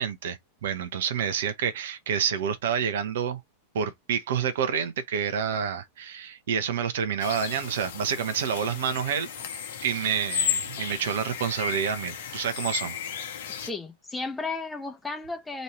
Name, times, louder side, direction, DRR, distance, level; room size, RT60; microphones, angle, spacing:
voice 1, 0.0-3.4 3.7-9.3 9.8-13.0, right 7 dB, 60° right, 0.8 m, -28 dB
sound 1, 7.2-13.7, left 8 dB, 60° left, 0.9 m, -34 dB
voice 2, 13.7-15.6, left 3 dB, 10° left, 0.8 m, -34 dB
3.1 x 2.7 x 4.2 m
figure-of-eight pair, 90°, 0 cm